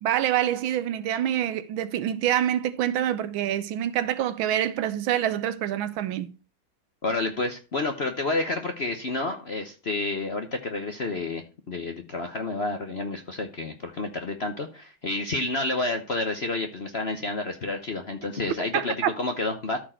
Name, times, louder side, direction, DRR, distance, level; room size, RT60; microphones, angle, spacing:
voice 1, 0.0-6.3 18.7-19.1, right 11 dB, 80° right, 1.5 m, -26 dB
voice 2, 7.0-19.8, left 2 dB, 45° left, 0.8 m, -30 dB
13.5 x 4.5 x 4.3 m
omnidirectional pair, 2.2 m